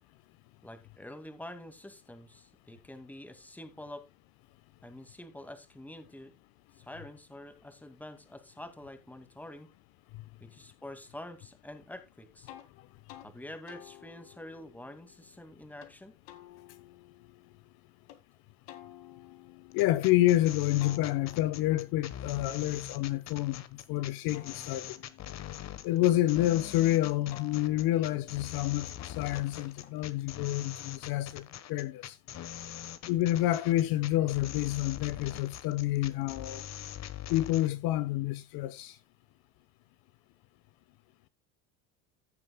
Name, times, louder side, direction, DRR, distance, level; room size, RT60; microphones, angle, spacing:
voice 1, 0.6-4.0 4.8-6.3 6.8-9.7 10.4-12.5 13.2-16.1, left 1 dB, 5° left, 2.0 m, -47 dB
sound 1, 12.5-12.7 13.1-13.3 13.7-15.9 16.3-18.2 18.7-20.4 20.8-23.7 24.1-26.8 27.3-30.3, left 13 dB, 75° left, 2.0 m, -54 dB
voice 2, 19.7-23.6 23.9-25.0 25.8-32.2 33.1-36.6 37.3-39.0, left 15 dB, 60° left, 1.0 m, -28 dB
sound 2, 19.7-37.7, left 11 dB, 40° left, 1.2 m, -43 dB
16.0 x 7.5 x 2.2 m
supercardioid pair, 100°, 39 cm